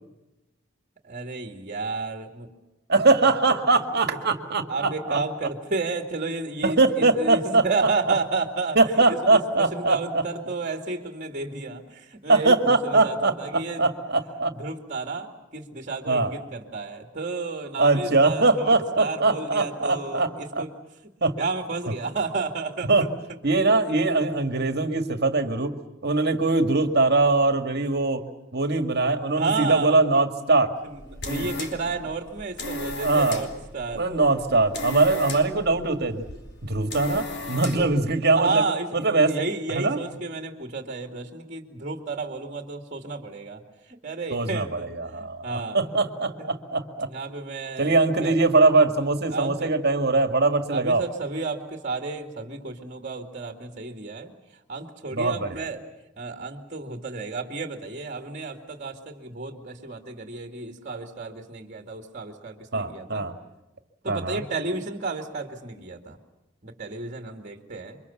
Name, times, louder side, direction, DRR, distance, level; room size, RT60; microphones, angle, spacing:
voice 1, 1.0-2.5 3.5-3.6 4.7-8.8 9.1-13.9 14.5-20.7 21.4-22.9 29.4-30.2 30.8-33.5 33.7-34.1 37.6-38.0 38.3-43.6 43.9-45.8 46.4-46.5 47.1-48.4 49.3-49.7 50.7-54.3 54.7-55.8 56.2-63.3 64.0-66.2 66.6-68.0, right 3 dB, 40° right, 4 dB, 2.4 m, -32 dB
voice 2, 2.9-5.2 6.6-7.9 8.8-10.2 12.3-14.5 16.1-16.3 17.8-20.6 21.2-21.4 22.9-23.1 23.4-25.8 26.0-28.3 28.5-30.7 31.3-31.5 33.0-33.4 33.9-36.2 36.6-38.6 38.9-39.4 39.7-40.0 44.3-47.1 47.8-51.0 55.1-55.7 62.7-63.3 64.1-64.4, right 3 dB, 55° right, 8 dB, 2.1 m, -22 dB
sound 1, 30.8-38.0, left 2 dB, 60° left, 3.5 m, -36 dB
28.5 x 24.5 x 7.2 m, 0.99 s
head